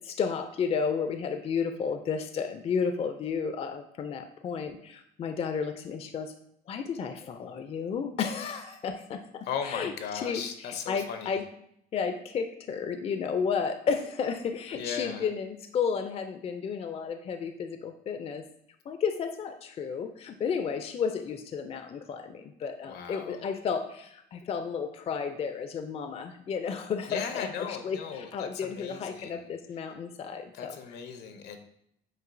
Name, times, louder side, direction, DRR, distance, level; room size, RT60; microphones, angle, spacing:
voice 1, 0.0-6.3 6.7-9.9 10.2-11.4 11.9-18.4 18.9-30.8, left 6 dB, 35° left, 7 dB, 0.4 m, -32 dB
voice 2, 9.4-11.4 14.7-15.3 22.8-23.4 27.1-29.5 30.5-31.6, left 7 dB, 75° left, 6 dB, 0.7 m, -37 dB
7.8 x 2.6 x 2.6 m, 0.72 s
cardioid pair, 110°, 17 cm